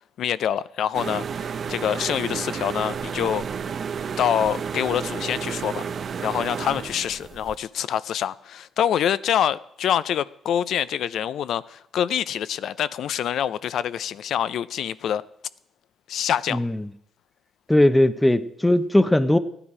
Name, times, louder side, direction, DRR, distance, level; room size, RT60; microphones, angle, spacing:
voice 1, 0.2-3.4 4.2-5.9 6.2-15.2 16.1-16.6, left 9 dB, 70° left, 0.4 m, -26 dB
sound 1, 0.9-7.6, right 6 dB, 50° right, 0.5 m, -31 dB
voice 2, 17.7-19.4, left 1 dB, 10° left, 0.6 m, -18 dB
15.0 x 9.9 x 4.9 m
cardioid pair, 90°, 0 cm